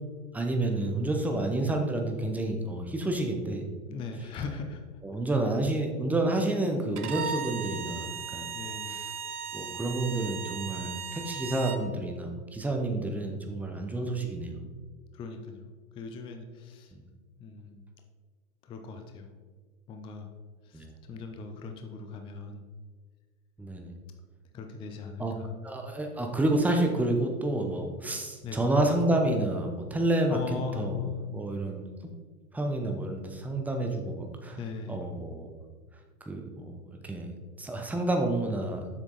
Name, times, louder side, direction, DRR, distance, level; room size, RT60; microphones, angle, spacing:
voice 1, 0.3-3.6 5.0-8.5 8.9-9.0 9.5-14.7 16.9-17.0 20.7-20.9 23.6-23.9 25.2-25.3 25.6-30.4 30.8-31.0 31.3-31.8 32.5-34.6 34.9-35.5 36.3-36.7 37.0-37.3 37.6-38.9, right 2 dB, 5° right, 3 dB, 0.8 m, -29 dB
voice 2, 3.9-4.8 8.5-9.0 15.1-15.7 15.9-16.9 17.4-17.8 18.6-19.3 19.9-20.3 20.6-22.6 24.5-25.6 28.4-28.7 30.3-31.2 34.6-35.0, left 5 dB, 15° left, 5 dB, 0.4 m, -39 dB
Bowed string instrument, 7.0-11.8, right 6 dB, 85° right, 0.8 m, -37 dB
7.5 x 6.1 x 3.9 m, 1.5 s
hypercardioid pair, 105°, 44 cm